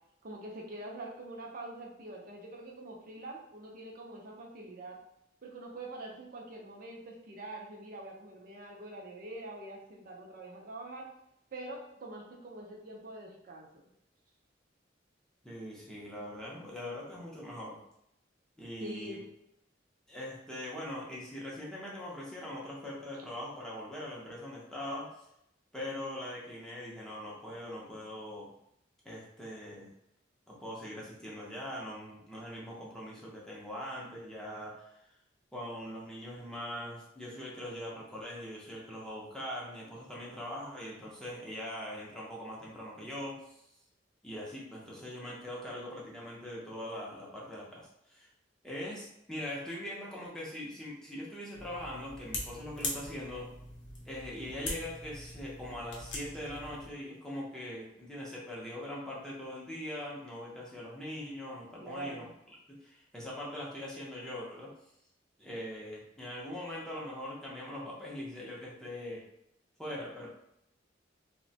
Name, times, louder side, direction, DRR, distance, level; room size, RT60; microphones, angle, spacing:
voice 1, 0.2-5.0 5.4-11.1 11.5-13.8 18.8-19.2 61.8-62.3, right 2 dB, 45° right, -1 dB, 0.5 m, -45 dB
voice 2, 15.4-17.8 18.6-19.2 20.1-25.1 25.7-28.5 29.0-29.9 30.5-35.0 35.5-43.6 44.2-48.3 48.6-53.5 54.1-64.7 65.4-69.2 69.8-70.3, left 1 dB, 5° left, -5 dB, 0.5 m, -42 dB
sound 1, 51.5-56.9, left 2 dB, 70° left, 0.7 m, -42 dB
2.9 x 2.1 x 2.7 m, 0.78 s
head